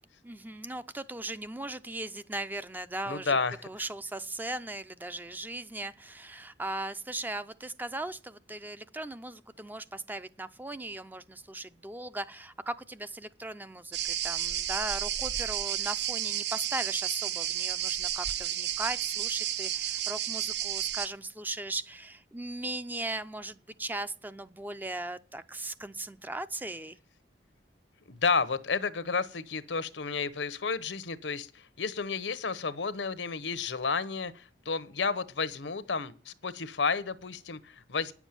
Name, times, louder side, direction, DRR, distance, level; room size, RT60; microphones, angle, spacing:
voice 1, 0.2-3.4 3.6-27.0, right 2 dB, 10° right, 0.5 m, -38 dB
voice 2, 3.1-3.6 28.1-38.1, left 4 dB, 80° left, 0.9 m, -31 dB
sound 1, 13.9-21.1, right 11 dB, 65° right, 0.8 m, -32 dB
10.0 x 7.2 x 8.9 m
head